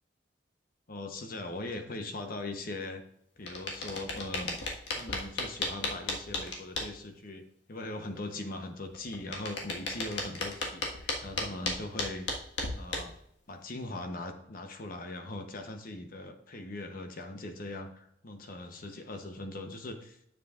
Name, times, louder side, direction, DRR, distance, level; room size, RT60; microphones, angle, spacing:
voice 1, 0.9-3.0 3.4-4.6 4.9-7.4 7.7-12.3 12.7-13.1 13.5-20.2, left 2 dB, 50° left, 6 dB, 0.9 m, -40 dB
sound 1, 3.5-6.9 8.9-13.2, left 2 dB, 80° left, 1.6 m, -34 dB
9.7 x 7.6 x 2.5 m, 0.73 s
head